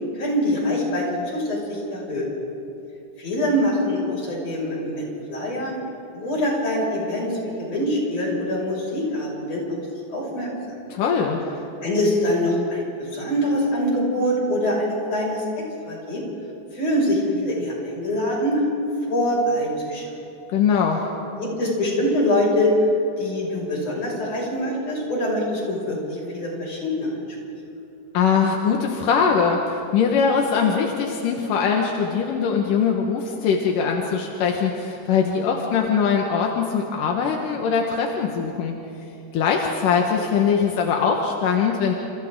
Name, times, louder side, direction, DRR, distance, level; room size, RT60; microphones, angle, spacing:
voice 1, 0.1-1.1 1.3-2.3 3.2-5.8 6.1-9.6 10.1-10.5 11.8-16.2 16.7-18.6 19.0-20.0 21.4-22.7 23.2-27.1, left 1 dB, 50° left, -3 dB, 7.1 m, -24 dB
voice 2, 10.9-11.5 20.5-21.0 28.1-38.8 39.3-41.9, left 6 dB, 85° left, 1 dB, 3.0 m, -21 dB
29.5 x 29.5 x 3.8 m, 2.8 s
omnidirectional pair, 3.7 m